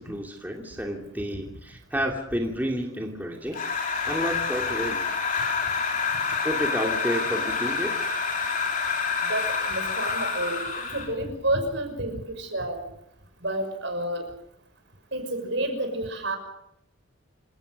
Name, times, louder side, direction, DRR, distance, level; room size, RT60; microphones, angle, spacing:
voice 1, 0.0-3.6 4.0-5.0 6.4-8.0, equal, 10° right, 1 dB, 2.7 m, -30 dB
sound 1, 3.5-11.2, left 5 dB, 40° left, 4.3 m, -28 dB
voice 2, 9.3-12.8 13.4-14.3 15.1-16.4, right 1 dB, 60° right, 7 dB, 5.9 m, -30 dB
28.5 x 17.5 x 6.6 m, 0.78 s
head